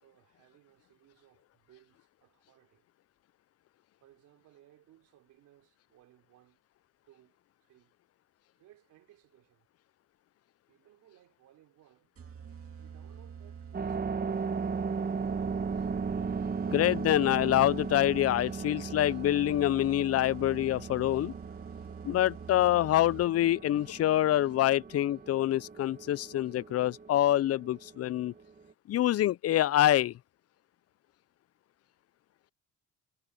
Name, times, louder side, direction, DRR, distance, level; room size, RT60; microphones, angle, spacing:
voice 1, 0.0-2.8 4.0-6.6 7.1-7.9 8.6-9.7 10.7-12.2 12.8-14.8, right 14 dB, 90° right, 3.6 m, -63 dB
sound 1, 12.2-23.5, right 7 dB, 50° right, 2.4 m, -47 dB
sound 2, 13.7-28.7, right 5 dB, 30° right, 1.3 m, -37 dB
voice 2, 16.7-21.3 22.0-28.3 28.9-30.1, left 13 dB, 55° left, 0.5 m, -26 dB
cardioid pair, 90°, 30 cm